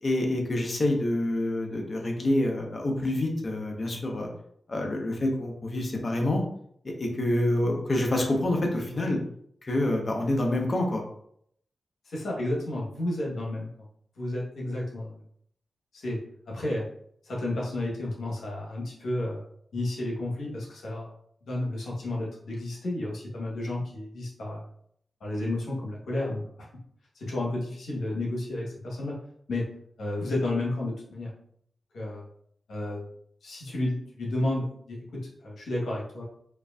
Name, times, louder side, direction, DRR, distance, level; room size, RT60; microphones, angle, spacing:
voice 1, 0.0-4.3 4.7-6.4 6.8-9.2 9.6-11.0, left 1 dB, 50° left, 1 dB, 1.0 m, -27 dB
voice 2, 12.1-13.7 14.2-15.1 15.9-16.2 16.5-16.8 17.2-19.4 19.7-21.1 21.5-24.6 25.2-26.7 27.1-29.2 29.5-29.6 30.0-31.3 31.9-32.2 32.7-33.1 33.4-36.2, left 1 dB, 85° left, -3 dB, 1.1 m, -31 dB
4.6 x 2.6 x 2.4 m, 0.67 s
cardioid pair, 45°, 0 cm